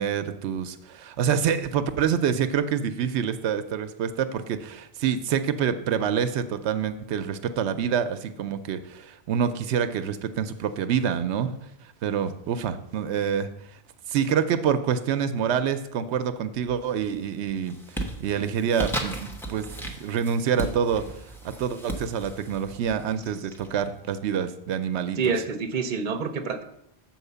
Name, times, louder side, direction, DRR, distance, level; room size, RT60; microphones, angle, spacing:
voice 1, 0.0-11.6 12.0-13.5 14.1-17.8 18.2-21.0 21.4-25.2, right 8 dB, 90° right, 10 dB, 0.9 m, -26 dB
sound 1, 16.6-17.1 17.5-24.1, right 1 dB, ahead, 0.9 m, -36 dB
voice 2, 25.2-26.6, right 5 dB, 50° right, 7 dB, 0.8 m, -27 dB
7.2 x 4.5 x 6.7 m, 0.77 s
omnidirectional pair, 1.1 m